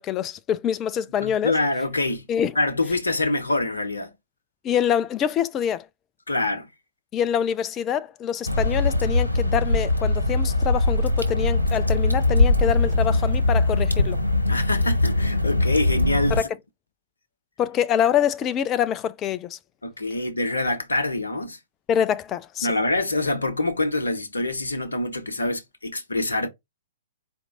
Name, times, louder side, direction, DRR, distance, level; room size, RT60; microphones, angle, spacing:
voice 1, 0.0-1.5 2.3-2.5 4.6-5.9 7.1-14.2 16.3-16.5 17.6-19.6 21.9-22.7, left 9 dB, 25° left, 0.4 m, -25 dB
voice 2, 1.2-2.3 2.5-4.1 6.3-6.7 14.5-16.4 19.8-21.6 22.6-26.5, left 2 dB, 70° left, 0.9 m, -25 dB
Water / Drip, 8.5-16.4, left 2 dB, 90° left, 1.2 m, -21 dB
4.4 x 2.6 x 3.8 m
figure-of-eight pair, 110°, 0 cm